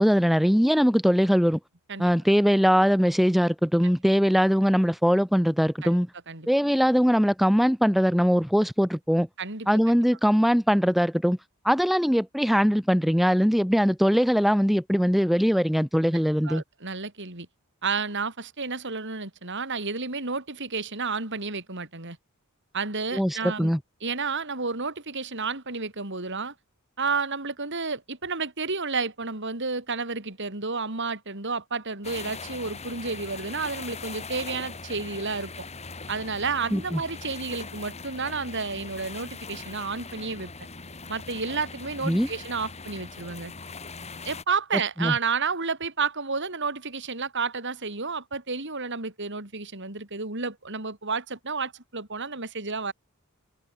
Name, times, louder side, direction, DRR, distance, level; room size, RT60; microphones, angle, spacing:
voice 1, 0.0-1.6 2.0-6.1 6.5-9.3 9.7-11.4 11.6-16.6 23.1-23.8 36.7-37.0 42.0-42.3 45.0-45.1, equal, ahead, 1.0 m, -21 dB
voice 2, 9.4-9.7 16.4-17.5 17.8-22.2 22.7-23.7 24.0-26.5 27.0-35.5 36.1-40.5 41.1-43.5 44.2-52.9, right 4 dB, 55° right, 4.2 m, -31 dB
sound 1, 32.0-44.4, left 4 dB, 30° left, 2.7 m, -40 dB
head